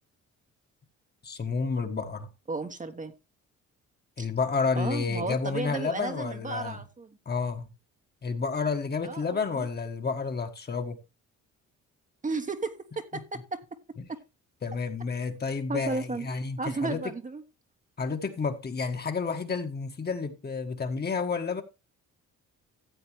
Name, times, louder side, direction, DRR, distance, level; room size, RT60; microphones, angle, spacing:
voice 1, 1.2-2.3 4.2-6.8 7.2-7.7 8.2-11.0 13.1-13.4 13.9-14.1 14.6-17.2 18.0-21.6, left 5 dB, 35° left, 1.5 m, -30 dB
voice 2, 2.5-3.1 4.2-4.3 4.7-7.2 9.0-9.7 12.2-13.6 14.1-14.2 15.7-16.3 16.6-17.4, right 3 dB, 25° right, 1.1 m, -34 dB
14.0 x 8.0 x 3.1 m
cardioid pair, 90°, 30 cm